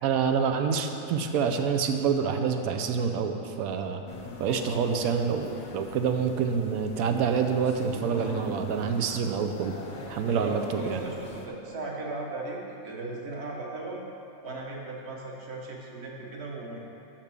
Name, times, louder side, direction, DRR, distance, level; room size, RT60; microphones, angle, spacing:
voice 1, 0.0-4.0 4.4-9.7 10.1-10.6 10.9-11.0, right 6 dB, 90° right, 6 dB, 1.1 m, -27 dB
sound 1, 4.1-11.5, left 3 dB, 45° left, 0.7 m, -43 dB
voice 2, 4.4-4.9 10.3-14.0 14.4-16.8, right 2 dB, 50° right, -2 dB, 1.3 m, -37 dB
5.9 x 5.9 x 6.8 m, 2.8 s
omnidirectional pair, 1.5 m